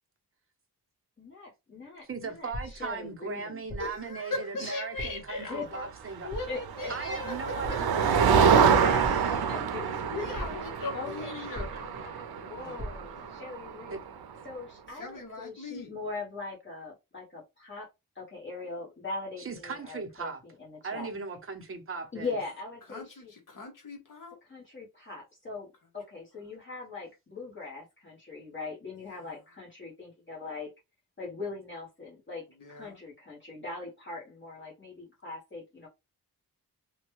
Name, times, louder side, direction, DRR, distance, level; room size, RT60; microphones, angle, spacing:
voice 1, 1.2-3.6 4.6-4.8 5.5-5.6 6.5-6.9 8.3-10.5 10.9-11.3 11.7-14.0 14.4-17.9 18.1-21.1 22.1-23.3 24.5-25.7 25.9-30.7 31.2-35.9, left 3 dB, 30° left, 1.1 m, -41 dB
voice 2, 2.0-6.3 6.9-8.6 13.9-14.0 19.4-20.4 20.8-22.4, right 4 dB, 35° right, 0.7 m, -38 dB
sound 1, 2.5-3.0 3.7-4.1 5.0-5.4 6.3-6.7 7.6-8.1 9.0-9.6 10.3-10.8 11.5-12.1 12.8-13.2, equal, 10° left, 1.2 m, -40 dB
voice 3, 3.8-5.9 6.2-8.1 8.5-8.7 9.5-11.7 12.6-13.4 14.9-15.9 22.9-24.4 29.1-29.3 32.6-33.0, left 3 dB, 60° left, 1.1 m, -40 dB
Motor vehicle (road), 6.4-14.2, right 6 dB, 85° right, 0.5 m, -26 dB
3.0 x 2.2 x 3.0 m
wide cardioid pair, 145°, 37 cm